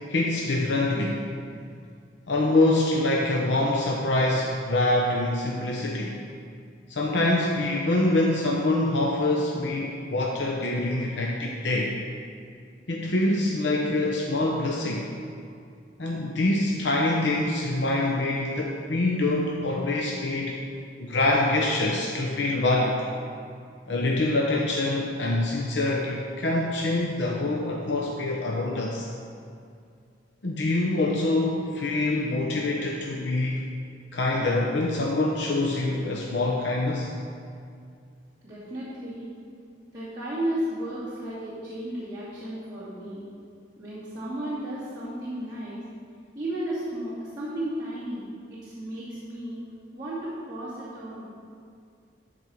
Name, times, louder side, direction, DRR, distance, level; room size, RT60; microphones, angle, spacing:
voice 1, 0.1-1.2 2.3-6.2 6.9-11.9 12.9-15.1 16.0-20.6 21.0-23.0 23.9-29.1 30.4-33.6 34.1-37.1, left 2 dB, 80° left, -1 dB, 0.8 m, -25 dB
voice 2, 38.4-39.3 39.9-43.3 43.8-45.8 46.3-49.6 49.9-51.3, right 1 dB, 20° right, -13 dB, 2.3 m, -34 dB
12.0 x 4.3 x 6.2 m, 2.3 s
head